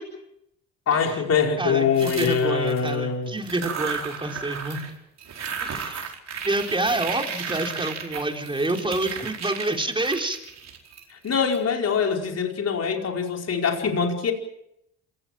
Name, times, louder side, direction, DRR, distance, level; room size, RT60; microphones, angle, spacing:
voice 1, 0.9-3.3 11.1-14.3, left 6 dB, 45° left, 2 dB, 4.9 m, -23 dB
voice 2, 1.6-4.8 5.6-6.1 6.4-10.4, right 2 dB, 15° right, 3 dB, 4.2 m, -28 dB
sound 1, 1.9-2.9 3.4-4.9 5.2-11.6, right 6 dB, 50° right, 4.8 m, -34 dB
27.5 x 17.0 x 7.7 m, 0.80 s
supercardioid pair, 70°, 34 cm